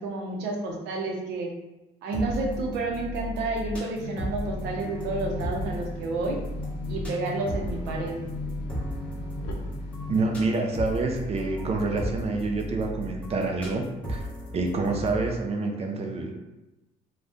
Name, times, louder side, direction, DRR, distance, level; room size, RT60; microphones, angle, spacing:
voice 1, 0.0-1.5 2.0-6.4 6.9-8.2, right 2 dB, 85° right, 0 dB, 0.7 m, -30 dB
sound 1, 2.1-15.3, equal, 10° left, 1.0 m, -35 dB
sound 2, 3.9-10.5, left 4 dB, 80° left, 0.5 m, -38 dB
voice 2, 10.1-14.3 14.5-16.3, right 3 dB, 35° right, 3 dB, 0.5 m, -27 dB
2.5 x 2.2 x 3.5 m, 1.0 s
cardioid pair, 110°, 17 cm